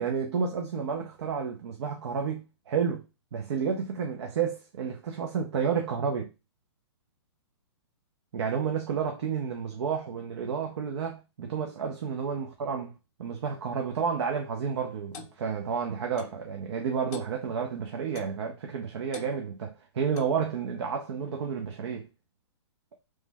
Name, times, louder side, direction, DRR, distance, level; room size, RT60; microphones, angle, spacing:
voice 1, 0.0-3.0 3.3-6.3 8.3-12.9 13.2-22.1, right 6 dB, 70° right, 0.6 m, -31 dB
Clock, 15.1-15.4 16.2-16.4 17.1-17.4 18.2-18.4 19.1-19.3 20.1-20.4, left 8 dB, 35° left, 0.5 m, -44 dB
3.2 x 2.1 x 3.3 m
hypercardioid pair, 145°, 15 cm